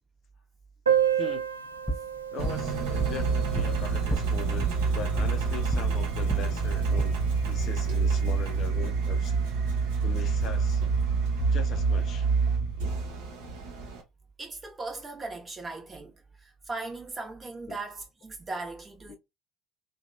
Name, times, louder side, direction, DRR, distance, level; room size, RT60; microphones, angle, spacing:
Piano, 0.9-6.2 6.5-6.6 6.8-6.9 7.3-7.4 8.1-8.3, right 9 dB, 80° right, 0.3 m, -31 dB
voice 1, 1.1-1.5 2.3-4.7 4.9-7.1 7.4-9.3 10.0-10.8 11.5-12.3 17.7-17.8 19.1-19.2, left 7 dB, 45° left, 0.5 m, -40 dB
sound 1, 1.6-5.9 6.2-7.0, right 1 dB, 5° left, 0.7 m, -34 dB
Engine, 2.4-14.0, right 5 dB, 60° right, 0.8 m, -27 dB
voice 2, 14.4-19.2, right 3 dB, 20° right, 1.0 m, -38 dB
2.8 x 2.2 x 2.5 m
figure-of-eight pair, 65°, 0 cm